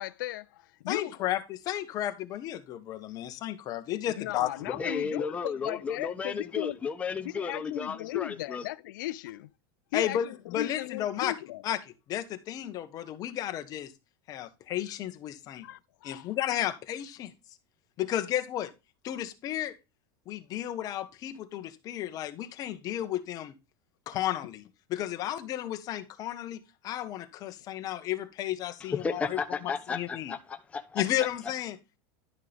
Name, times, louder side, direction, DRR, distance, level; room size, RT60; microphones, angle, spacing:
voice 1, 0.0-1.1 4.2-6.8 7.2-9.5 9.9-11.6 15.6-16.3, left 16 dB, 80° left, 0.5 m, -36 dB
voice 2, 0.9-4.5 9.9-11.3 11.6-11.8 12.1-13.9 14.3-15.6 16.0-17.3 18.0-18.7 19.0-19.7 20.3-23.5 24.1-24.6 24.9-30.4 30.9-32.0, left 12 dB, 35° left, 1.2 m, -33 dB
voice 3, 4.7-8.6 28.9-31.0, left 5 dB, 10° left, 0.8 m, -33 dB
11.0 x 6.5 x 3.4 m
supercardioid pair, 150°, 10 cm